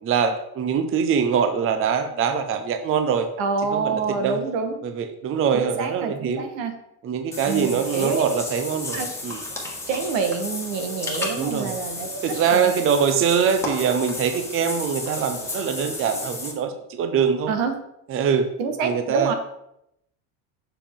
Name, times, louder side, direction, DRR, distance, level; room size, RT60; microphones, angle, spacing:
voice 1, 0.0-3.3 3.7-4.4 4.8-6.4 7.0-9.4 11.4-11.7 12.2-17.5 18.1-18.5 18.8-19.3, right 7 dB, 30° right, 7 dB, 0.7 m, -23 dB
voice 2, 3.4-4.8 5.5-6.7 7.4-8.2 8.9-9.1 9.9-12.7 17.5-17.7 18.6-19.3, right 5 dB, 80° right, 6 dB, 1.5 m, -26 dB
Water / Bathtub (filling or washing), 7.3-16.5, left 2 dB, 5° left, 1.5 m, -33 dB
7.0 x 6.9 x 3.7 m, 0.80 s
cardioid pair, 125°, 43 cm